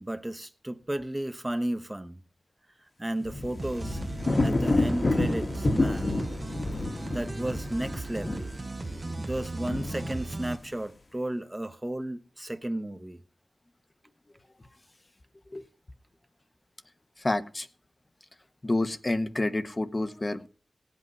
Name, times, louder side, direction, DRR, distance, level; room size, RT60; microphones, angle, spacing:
voice 1, 0.0-2.2 3.0-4.0 4.4-6.1 7.0-8.5 9.2-13.2, right 1 dB, 20° right, 1.1 m, -33 dB
sound 1, 3.2-10.7, left 2 dB, 55° left, 1.3 m, -29 dB
sound 2, 3.6-10.6, right 3 dB, 45° right, 0.7 m, -37 dB
voice 2, 17.2-17.7 18.6-20.5, left 2 dB, 35° left, 1.0 m, -29 dB
17.0 x 8.4 x 5.4 m
cardioid pair, 45°, 0 cm